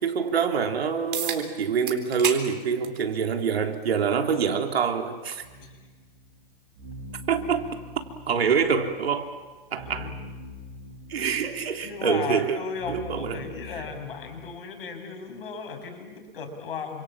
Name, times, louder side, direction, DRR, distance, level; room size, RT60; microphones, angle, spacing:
voice 1, 0.0-5.4 7.3-7.8 8.3-9.3 9.7-10.1 11.1-12.6 12.9-13.4, right 6 dB, 80° right, 3.5 m, -25 dB
sound 1, 1.1-1.4 1.9-2.4 2.8-3.0 4.1-4.2 9.1-9.2, right 8 dB, 55° right, 3.8 m, -30 dB
sound 2, 5.4-14.5, left 1 dB, 25° right, 5.5 m, -44 dB
voice 2, 5.6-5.9 9.8-10.1 11.1-11.3 11.8-17.0, left 5 dB, 65° left, 6.3 m, -36 dB
29.5 x 27.0 x 7.4 m
hypercardioid pair, 175°, 30 cm